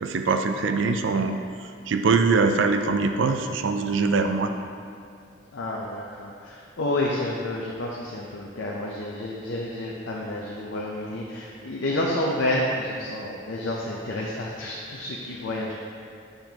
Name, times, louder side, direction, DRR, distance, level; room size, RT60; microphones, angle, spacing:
voice 1, 0.0-1.4 1.9-4.5, right 4 dB, 70° right, 6 dB, 0.4 m, -23 dB
voice 2, 5.5-15.7, left 1 dB, 75° left, -3 dB, 0.6 m, -29 dB
6.7 x 5.8 x 2.8 m, 2.4 s
head